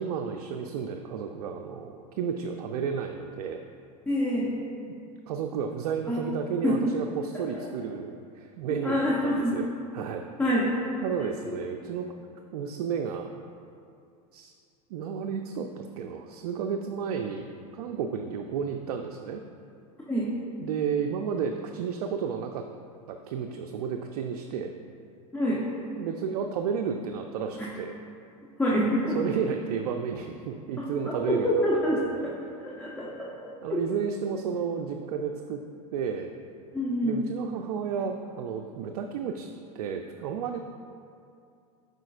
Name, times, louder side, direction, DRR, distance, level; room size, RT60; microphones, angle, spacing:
voice 1, 0.0-3.6 5.3-9.7 9.9-10.2 11.0-12.1 12.5-13.3 14.3-14.5 14.9-19.4 20.6-22.7 23.1-24.7 26.0-27.9 29.1-32.3 33.6-35.6 35.9-36.3 37.0-39.5 39.7-40.6, right 6 dB, 70° right, 4 dB, 0.4 m, -32 dB
voice 2, 4.1-4.6 6.1-6.2 6.6-6.9 7.3-7.7 8.7-9.6 10.4-11.6 20.1-20.3 25.3-25.7 27.6-27.7 28.6-29.2 30.8-33.8 36.7-37.2, equal, 10° left, -6 dB, 0.8 m, -27 dB
7.5 x 5.1 x 2.4 m, 2.5 s
hypercardioid pair, 105°, 20 cm